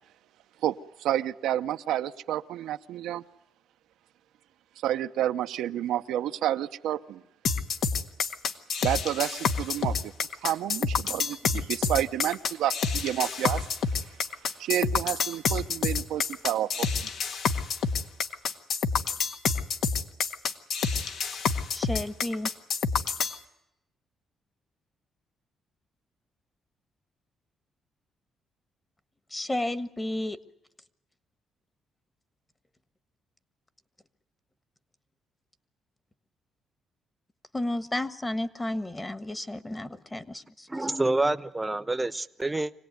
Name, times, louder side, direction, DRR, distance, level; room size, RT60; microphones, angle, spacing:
voice 1, 0.6-3.2 4.8-7.2 8.8-10.1 10.4-13.6 14.6-16.9, right 12 dB, 85° right, 8 dB, 0.8 m, -30 dB
sound 1, 7.4-23.4, left 5 dB, 70° left, 1.6 m, -28 dB
voice 2, 21.7-22.5 29.3-30.4 37.5-40.7, left 1 dB, 15° left, 13 dB, 1.4 m, -32 dB
voice 3, 40.7-42.7, right 2 dB, 15° right, 14 dB, 1.0 m, -27 dB
25.5 x 18.0 x 9.4 m, 0.85 s
cardioid pair, 90°, 0 cm